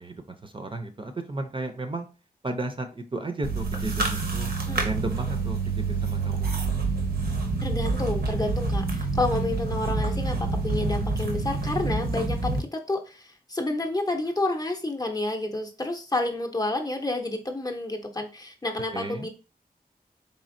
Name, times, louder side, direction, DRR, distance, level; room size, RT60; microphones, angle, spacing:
voice 1, 0.0-2.1 2.4-4.5 4.8-6.6 18.9-19.3, right 2 dB, 35° right, 6 dB, 0.5 m, -34 dB
sound 1, 3.4-12.6, right 3 dB, 85° right, 0.8 m, -27 dB
voice 2, 7.6-19.3, left 2 dB, 25° left, 3 dB, 0.6 m, -30 dB
4.2 x 3.3 x 2.5 m, 0.33 s
wide cardioid pair, 115°, 16 cm